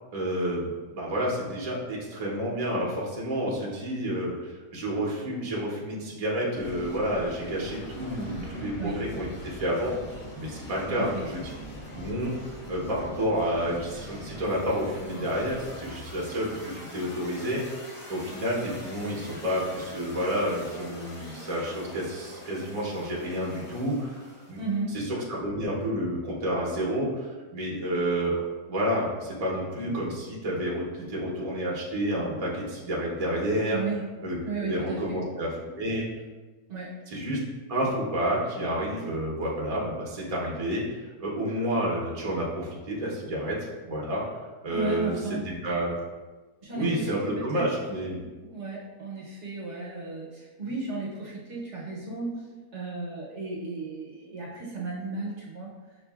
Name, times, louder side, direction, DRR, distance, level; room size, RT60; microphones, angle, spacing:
voice 1, 0.1-9.9 10.4-11.4 11.9-17.6 18.1-24.2 24.5-24.6 24.9-28.4 28.7-33.8 34.2-36.1 37.1-37.4 37.7-40.8 41.2-44.2 44.6-46.0 46.7-48.2, equal, 35° right, -4 dB, 0.6 m, -30 dB
sound 1, 6.5-24.8, equal, 45° left, 0.4 m, -42 dB
voice 2, 10.9-11.2 24.6-25.0 33.7-34.0 34.4-35.2 36.7-36.9 44.7-45.5 46.6-47.6 48.4-55.7, right 3 dB, 55° right, -4 dB, 1.0 m, -34 dB
6.2 x 2.5 x 2.3 m, 1.2 s
omnidirectional pair, 1.6 m